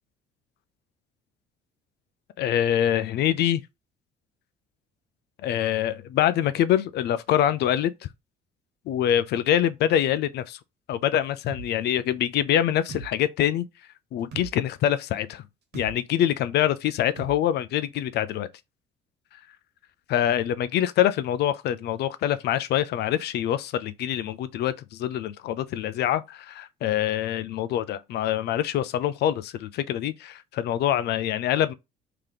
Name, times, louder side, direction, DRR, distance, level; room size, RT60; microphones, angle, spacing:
voice 1, 2.4-3.6 5.4-7.9 8.9-10.6 10.9-13.7 14.1-15.4 15.7-18.5 20.1-31.7, left 11 dB, 65° left, 0.4 m, -25 dB
sound 1, 11.5-11.7 12.9-13.1 14.3-14.5 15.7-15.9 17.2-17.4, right 4 dB, 65° right, 1.2 m, -37 dB
3.2 x 2.9 x 3.8 m
cardioid pair, 110°, 18 cm